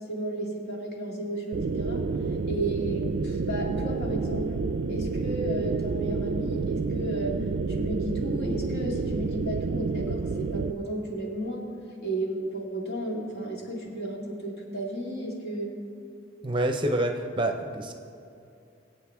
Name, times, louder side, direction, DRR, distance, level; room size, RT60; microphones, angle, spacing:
voice 1, 0.1-2.0 2.4-4.5 4.9-7.4 7.7-11.7 12.0-15.7, right 1 dB, 60° left, -2 dB, 2.2 m, -33 dB
sound 1, 1.5-10.7, right 4 dB, 80° right, 0.4 m, -29 dB
voice 2, 16.4-17.9, right 1 dB, 25° right, 5 dB, 0.6 m, -27 dB
22.5 x 8.1 x 3.5 m, 2.5 s
head